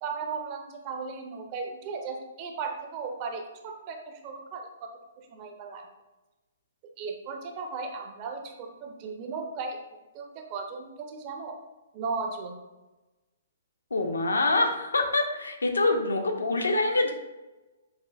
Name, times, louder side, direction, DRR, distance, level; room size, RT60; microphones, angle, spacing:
voice 1, 0.0-4.9 5.2-5.9 7.0-9.8 10.1-11.6 11.9-12.6, right 4 dB, 35° right, 4 dB, 0.4 m, -36 dB
voice 2, 13.9-17.1, left 2 dB, 70° left, 4 dB, 0.5 m, -25 dB
5.7 x 2.5 x 2.3 m, 1.1 s
figure-of-eight pair, 120°, 0 cm